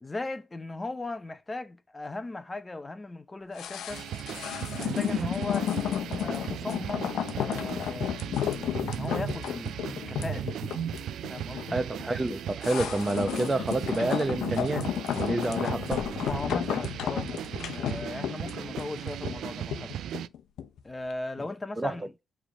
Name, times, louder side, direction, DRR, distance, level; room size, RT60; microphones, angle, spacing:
voice 1, 0.0-4.1 4.8-10.6 11.3-11.8 16.2-17.4 17.7-20.1 20.8-22.1, left 2 dB, 20° left, 0.7 m, -38 dB
sound 1, 3.5-20.8 21.1-21.2, left 10 dB, 75° left, 0.8 m, -33 dB
sound 2, 3.9-20.3, right 10 dB, 75° right, 0.4 m, -37 dB
voice 2, 11.7-14.8 15.1-16.1 21.8-21.9, right 2 dB, 20° right, 0.7 m, -28 dB
7.2 x 3.4 x 4.9 m
cardioid pair, 90°, 0 cm